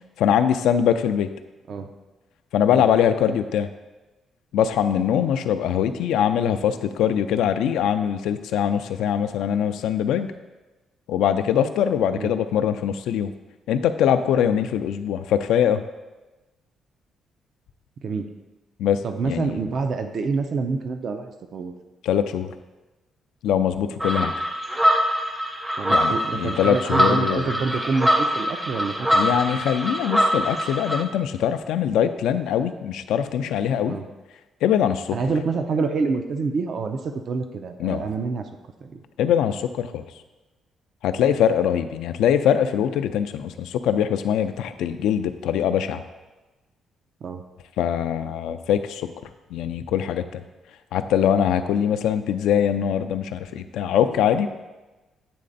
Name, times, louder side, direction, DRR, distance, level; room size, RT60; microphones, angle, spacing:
voice 1, 0.2-1.3 2.5-3.7 4.5-10.3 11.1-13.3 13.7-15.8 18.8-19.5 22.0-22.5 23.4-24.3 25.9-27.5 29.1-34.0 34.6-35.2 37.8-38.0 39.2-40.0 41.0-46.0 47.8-49.1 49.5-50.4 50.9-54.5, left 9 dB, 85° left, 9 dB, 0.3 m, -22 dB
voice 2, 18.0-18.3 19.0-21.7 25.8-29.1 33.8-34.1 35.1-38.5 38.8-39.0 41.3-41.4 47.2-47.4, right 4 dB, 55° right, 7 dB, 0.5 m, -27 dB
sound 1, 24.0-31.0, equal, 10° right, 0.6 m, -23 dB
8.5 x 3.3 x 3.9 m, 1.1 s
cardioid pair, 90°, 0 cm